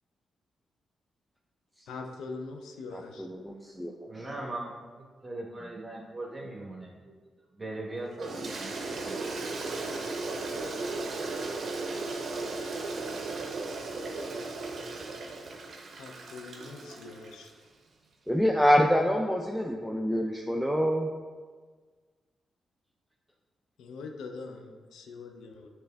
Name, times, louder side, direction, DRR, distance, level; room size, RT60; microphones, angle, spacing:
voice 1, 1.9-3.3 16.0-17.5 23.8-25.7, left 4 dB, 80° left, 4 dB, 0.4 m, -42 dB
voice 2, 3.2-3.9 18.3-21.1, equal, ahead, 1 dB, 0.4 m, -26 dB
voice 3, 3.7-7.1 7.6-9.2, right 2 dB, 30° right, -2 dB, 1.1 m, -40 dB
Toilet flush, 8.2-17.5, right 3 dB, 65° right, 0.6 m, -36 dB
6.5 x 3.1 x 2.3 m, 1.5 s
supercardioid pair, 50°, 0 cm